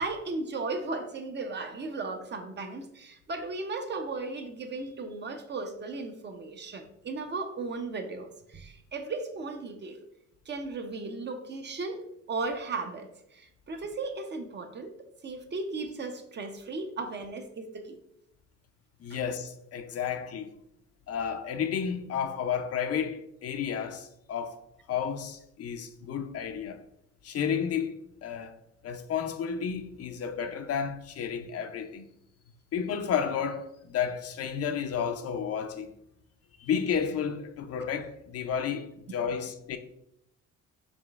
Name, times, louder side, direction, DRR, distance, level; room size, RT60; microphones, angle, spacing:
voice 1, 0.0-10.0 10.5-12.0 12.3-14.9 15.2-18.0 19.1-19.2, right 3 dB, 35° right, 0.6 m, -36 dB
voice 2, 19.0-20.6 21.1-24.6 24.9-26.8 27.2-28.5 28.8-32.1 32.7-35.9 36.6-39.8, left 7 dB, 55° left, 0.5 m, -32 dB
4.9 x 3.1 x 2.3 m
cardioid pair, 90°, 30 cm